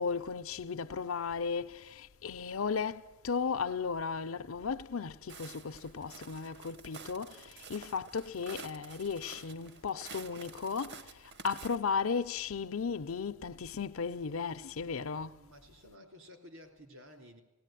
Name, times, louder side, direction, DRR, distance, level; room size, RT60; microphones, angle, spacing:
voice 1, 0.0-15.4, left 5 dB, 80° left, 0.6 m, -35 dB
Walk footsteps, 5.3-11.8, right 5 dB, 55° right, 1.0 m, -50 dB
voice 2, 14.9-17.4, left 1 dB, 75° right, 3.7 m, -54 dB
18.0 x 17.0 x 9.1 m
head